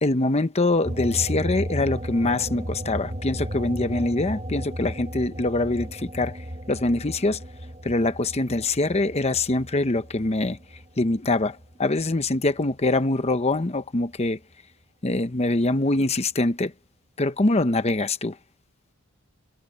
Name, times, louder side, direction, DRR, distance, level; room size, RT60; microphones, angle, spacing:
voice 1, 0.0-6.4 6.7-7.4 7.8-10.6 11.0-14.4 15.0-16.7 17.2-18.3, left 2 dB, 30° left, 0.8 m, -24 dB
sound 1, 0.8-11.7 12.1-13.6, equal, 30° right, 1.7 m, -34 dB
head